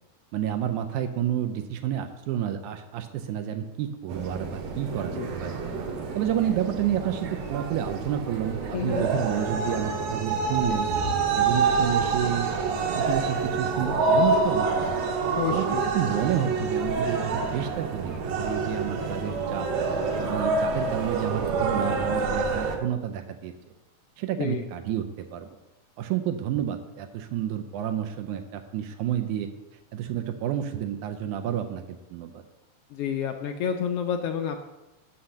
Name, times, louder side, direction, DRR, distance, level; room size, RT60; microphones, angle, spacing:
voice 1, 0.3-5.6 6.2-10.9 11.4-15.0 15.5-15.7 15.9-19.7 20.2-23.5 24.2-25.5 26.0-29.5 29.9-32.4, right 10 dB, 90° right, 6 dB, 2.1 m, -30 dB
sound 1, 4.1-22.8, right 4 dB, 70° right, 2.1 m, -27 dB
voice 2, 8.7-9.1 15.3-15.9 24.4-24.6 32.9-34.6, left 7 dB, 85° left, 3 dB, 1.3 m, -29 dB
6.4 x 5.8 x 7.0 m, 1.0 s
omnidirectional pair, 3.4 m